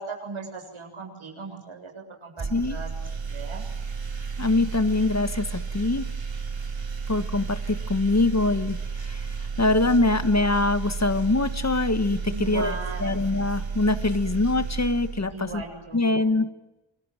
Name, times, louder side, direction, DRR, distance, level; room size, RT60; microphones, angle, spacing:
voice 1, 0.0-2.9 3.3-3.6 12.3-13.2 15.3-16.3, right 4 dB, 90° right, 2 dB, 7.6 m, -37 dB
sound 1, 2.4-15.8, right 5 dB, 70° right, 4.1 m, -32 dB
voice 2, 4.4-6.1 7.1-9.3 9.6-12.7 13.0-15.6 15.9-16.5, left 2 dB, 35° left, 11 dB, 1.6 m, -24 dB
28.5 x 23.0 x 9.2 m, 0.97 s
wide cardioid pair, 85°, 47 cm